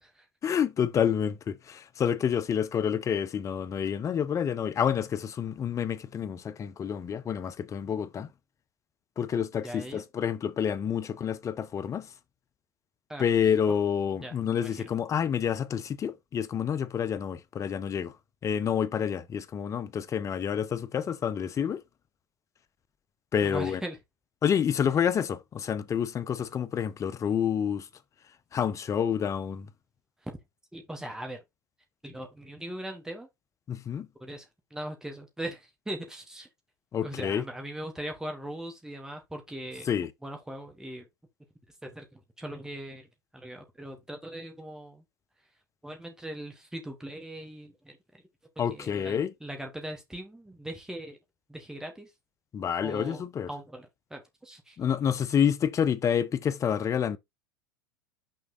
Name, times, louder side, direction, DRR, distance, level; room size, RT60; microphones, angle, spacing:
voice 1, 0.4-8.3 9.2-12.1 13.2-18.1 18.4-21.8 23.3-23.8 24.4-27.9 28.5-29.7 33.7-34.1 36.9-37.4 39.9-40.1 48.6-49.3 52.5-53.5 54.8-57.2, left 8 dB, 30° left, 1.0 m, -28 dB
voice 2, 9.6-10.0 13.1-13.2 14.2-14.9 23.4-24.0 30.2-30.4 30.7-31.4 32.0-33.3 34.2-36.5 37.0-39.9 40.2-41.1 41.8-45.0 45.8-48.2 48.5-51.2 51.5-52.1 52.8-54.8, right 1 dB, 5° right, 3.1 m, -40 dB
6.5 x 5.2 x 3.9 m
figure-of-eight pair, 80°, 11 cm